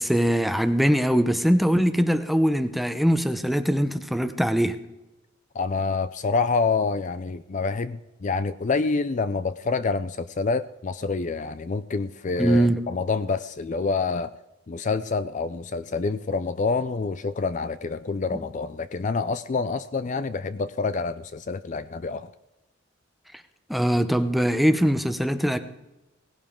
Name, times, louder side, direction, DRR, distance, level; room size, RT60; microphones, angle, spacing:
voice 1, 0.0-4.8 12.4-12.8 23.7-25.6, equal, ahead, 9 dB, 0.8 m, -22 dB
voice 2, 5.5-14.3 14.7-22.3, left 4 dB, 40° left, 14 dB, 0.4 m, -27 dB
18.5 x 16.5 x 3.7 m, 0.99 s
head